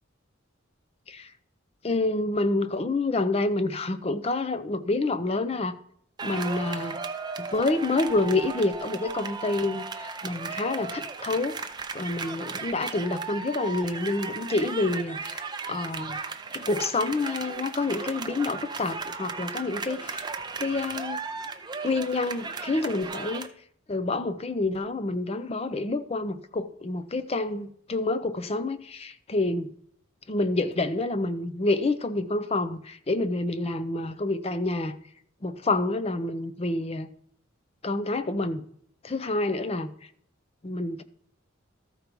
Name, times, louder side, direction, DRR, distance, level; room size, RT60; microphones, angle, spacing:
voice 1, 1.8-5.8 6.2-7.0 7.4-11.6 11.9-16.2 16.5-20.3 20.6-21.2 21.8-23.5 23.9-29.7 30.3-35.0 35.4-37.1 37.8-38.6 39.0-39.9 40.6-41.0, left 2 dB, 30° left, 0.6 m, -28 dB
sound 1, 6.2-23.5, right 4 dB, 20° right, 0.6 m, -36 dB
13.5 x 4.5 x 5.2 m
head